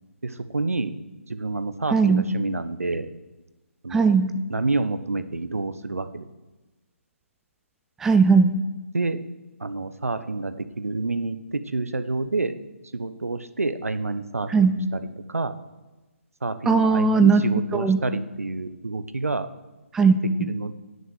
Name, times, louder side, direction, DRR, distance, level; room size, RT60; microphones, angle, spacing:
voice 1, 0.2-1.0 1.3-3.1 3.8-4.2 4.5-6.3 8.9-9.2 9.6-12.5 12.9-15.5 16.4-19.5 20.4-20.7, right 3 dB, 75° right, 11 dB, 1.1 m, -28 dB
voice 2, 1.9-2.2 3.9-4.3 8.0-8.6 14.5-14.7 16.7-17.4 17.7-18.0 19.9-20.5, right 5 dB, 5° right, 8 dB, 0.4 m, -18 dB
18.0 x 6.9 x 6.6 m, 1.1 s
figure-of-eight pair, 145°, 8 cm